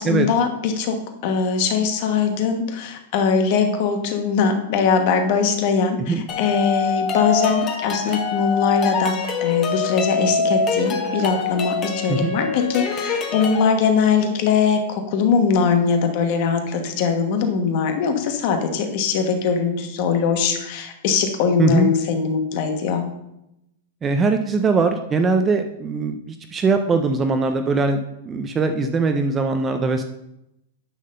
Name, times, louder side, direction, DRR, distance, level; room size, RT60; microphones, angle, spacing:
voice 1, 0.0-23.0, left 5 dB, 35° left, 5 dB, 1.1 m, -21 dB
sound 1, 6.3-13.7, left 5 dB, 20° left, 0.9 m, -24 dB
voice 2, 21.6-21.9 24.0-30.0, right 4 dB, 10° right, 7 dB, 0.4 m, -21 dB
9.9 x 3.7 x 6.6 m, 0.85 s
supercardioid pair, 175°, 0 cm